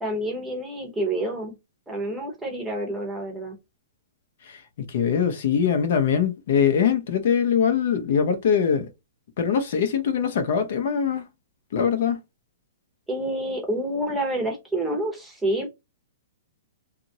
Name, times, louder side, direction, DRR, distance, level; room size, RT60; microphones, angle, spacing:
voice 1, 0.0-1.5 1.9-3.6 13.1-15.7, right 1 dB, 5° right, 0.9 m, -28 dB
voice 2, 4.5-8.9 9.4-11.2 11.7-12.2, left 7 dB, 50° left, 0.7 m, -22 dB
2.9 x 2.4 x 2.7 m
hypercardioid pair, 170°, 0 cm